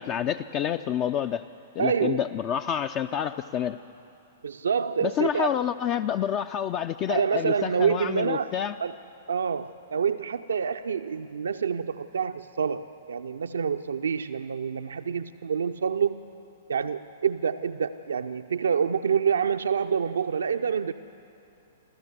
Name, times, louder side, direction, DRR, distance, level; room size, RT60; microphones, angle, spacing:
voice 1, 0.0-1.4 1.8-3.8 5.0-8.8, left 9 dB, 30° left, 10 dB, 0.4 m, -28 dB
voice 2, 1.8-2.2 4.4-5.6 7.1-8.5 8.8-8.9 9.3-16.3 16.7-20.9, right 7 dB, 65° right, 9 dB, 0.5 m, -27 dB
27.0 x 14.5 x 8.0 m, 2.6 s
figure-of-eight pair, 110°, 0 cm